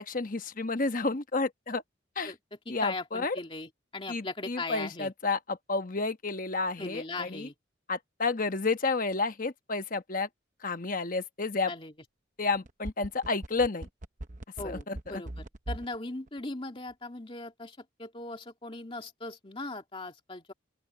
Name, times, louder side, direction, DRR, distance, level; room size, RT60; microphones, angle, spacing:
voice 1, 0.0-1.8 2.1-2.3 2.7-3.4 4.1-7.5 7.9-10.3 10.6-11.7 12.4-13.9 14.6-15.2, left 3 dB, 45° left, 1.1 m, -31 dB
voice 2, 2.7-5.1 6.8-7.5 11.7-11.9 14.6-15.3 15.7-20.5, left 2 dB, 25° left, 2.3 m, -39 dB
sound 1, 12.5-16.0 16.3-16.4, right 1 dB, 40° right, 0.9 m, -39 dB
open air
head